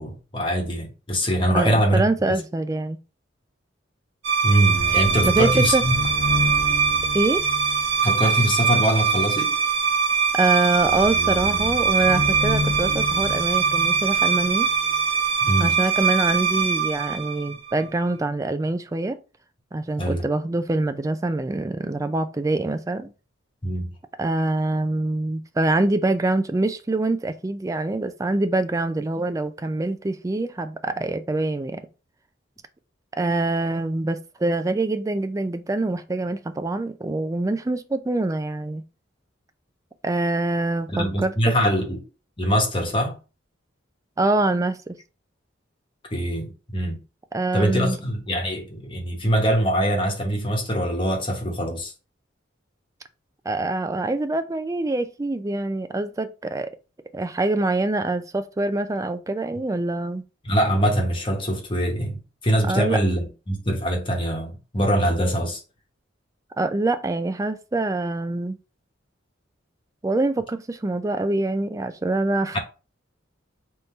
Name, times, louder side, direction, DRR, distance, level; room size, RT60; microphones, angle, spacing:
voice 1, 0.0-2.0 4.4-5.9 8.0-9.6 15.4-15.7 20.0-20.2 23.6-23.9 40.9-42.0 42.4-43.1 46.1-47.0 47.5-51.9 60.4-65.6 72.5-72.6, equal, 25° left, 1.0 m, -23 dB
voice 2, 1.5-3.0 5.2-5.8 7.1-7.5 10.3-14.7 15.6-19.2 19.7-23.1 24.2-31.8 33.2-38.8 40.0-41.3 44.2-45.0 47.3-48.0 53.5-56.7 57.1-60.2 62.6-63.0 66.6-68.6 70.0-72.6, right 2 dB, 15° right, 0.3 m, -24 dB
sound 1, 4.2-17.9, right 5 dB, 70° right, 1.2 m, -22 dB
3.6 x 2.7 x 4.3 m
head